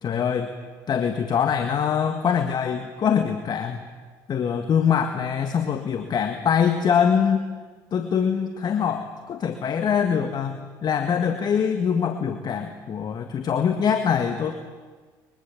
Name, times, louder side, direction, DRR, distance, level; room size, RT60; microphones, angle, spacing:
voice 1, 0.0-0.5 0.9-3.8 4.3-7.5 7.9-14.5, left 7 dB, 45° left, 7 dB, 1.9 m, -23 dB
23.5 x 23.0 x 7.5 m, 1.4 s
hypercardioid pair, 70°, 10 cm